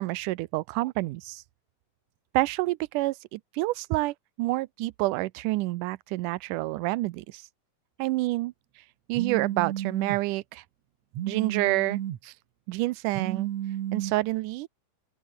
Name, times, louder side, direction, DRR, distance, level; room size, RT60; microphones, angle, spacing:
voice 1, 0.0-1.4 2.3-7.4 8.0-8.5 9.1-10.6 11.3-12.3 12.7-13.5 13.9-14.7, right 19 dB, 80° right, 2.1 m, -28 dB
Telephone, 9.1-10.2 11.1-12.2 13.1-14.1, right 11 dB, 65° right, 2.4 m, -32 dB
open air
omnidirectional pair, 3.8 m